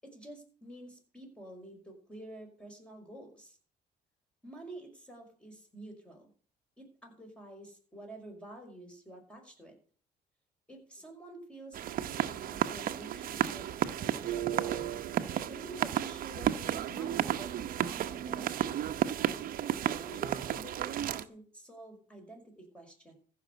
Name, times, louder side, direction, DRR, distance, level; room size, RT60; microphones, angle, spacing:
voice 1, 0.0-3.6 4.4-6.3 6.8-9.8 10.7-15.0 15.5-18.9 19.8-23.1, right 1 dB, 5° left, 2 dB, 5.5 m, -49 dB
sound 1, 11.7-21.2, right 10 dB, 55° right, 0.9 m, -33 dB
15.0 x 6.1 x 8.1 m, 0.43 s
cardioid pair, 110°, 17 cm